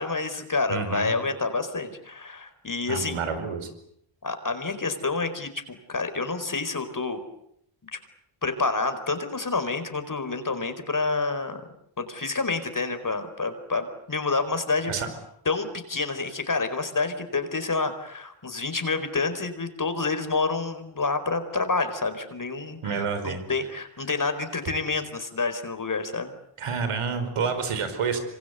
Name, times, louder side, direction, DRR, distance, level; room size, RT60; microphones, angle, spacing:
voice 1, 0.0-3.2 4.2-7.2 7.9-8.0 8.4-11.6 12.0-14.9 15.4-26.3, left 3 dB, 40° left, 9 dB, 4.7 m, -28 dB
voice 2, 0.7-1.1 2.9-3.7 14.9-15.1 22.8-23.4 26.6-28.2, right 5 dB, 85° right, 9 dB, 4.9 m, -28 dB
26.5 x 26.0 x 8.3 m, 0.72 s
cardioid pair, 65°, 49 cm